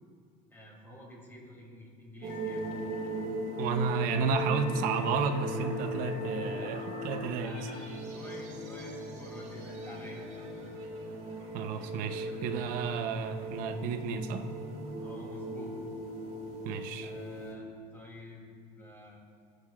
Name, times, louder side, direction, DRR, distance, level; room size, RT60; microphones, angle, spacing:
voice 1, 0.5-2.6 7.0-7.9 8.1-10.5 15.0-15.8 17.0-19.2, left 1 dB, 15° left, -2 dB, 2.7 m, -50 dB
sound 1, 2.2-17.5, equal, 45° right, 2.0 m, -38 dB
Wind instrument woodwind instrument, 2.3-7.9, left 7 dB, 75° left, 0.7 m, -50 dB
voice 2, 3.6-7.5 11.5-14.5 16.6-17.1, right 5 dB, 70° right, 8 dB, 0.8 m, -32 dB
21.0 x 8.0 x 2.4 m, 2.4 s
cardioid pair, 140°, 15 cm